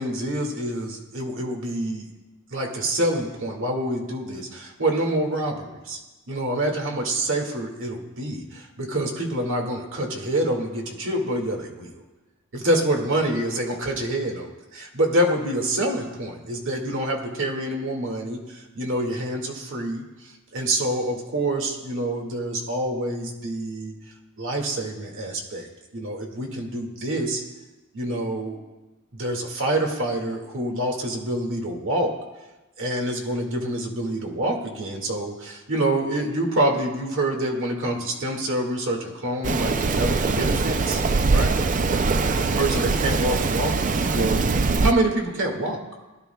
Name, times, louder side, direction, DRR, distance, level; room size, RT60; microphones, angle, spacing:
voice 1, 0.0-2.1 2.5-6.0 6.3-11.9 12.5-23.9 24.4-27.4 27.9-28.6 29.1-32.1 32.8-41.0 41.3-41.5 42.4-44.4 44.8-45.8, right 1 dB, 60° right, 1 dB, 2.0 m, -26 dB
Rain, 39.4-44.9, right 3 dB, 35° right, 0.5 m, -22 dB
20.0 x 11.0 x 2.3 m, 1.1 s
head